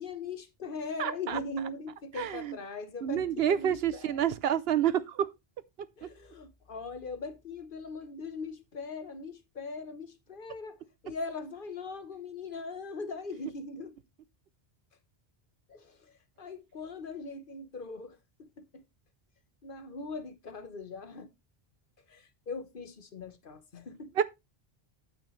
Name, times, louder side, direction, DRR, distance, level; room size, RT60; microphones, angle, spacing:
voice 1, 0.0-4.3 6.0-13.9 15.7-18.8 19.6-21.3 22.1-24.1, left 3 dB, 60° left, 1.2 m, -40 dB
voice 2, 1.0-1.4 2.2-2.6 3.0-5.3 6.0-6.1 24.2-24.3, right 9 dB, 75° right, 0.9 m, -28 dB
8.7 x 8.1 x 3.2 m
omnidirectional pair, 1.0 m